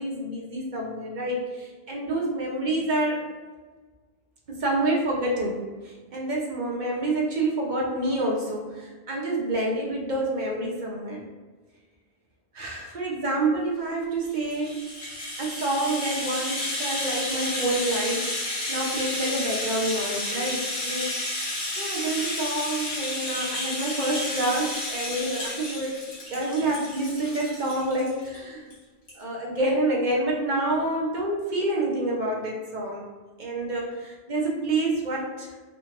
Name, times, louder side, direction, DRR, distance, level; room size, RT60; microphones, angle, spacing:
voice 1, 0.0-3.2 4.5-5.6 5.8-11.2 12.5-14.8 15.4-18.2 18.7-21.1 21.8-26.0 26.3-28.7 29.2-33.0 33.4-35.5, right 2 dB, 50° right, -2 dB, 0.7 m, -28 dB
Rattle (instrument), 14.2-28.4 28.7-28.8 29.1-29.2, left 1 dB, 70° left, 1.3 m, -31 dB
3.8 x 2.4 x 2.9 m, 1.4 s
omnidirectional pair, 1.1 m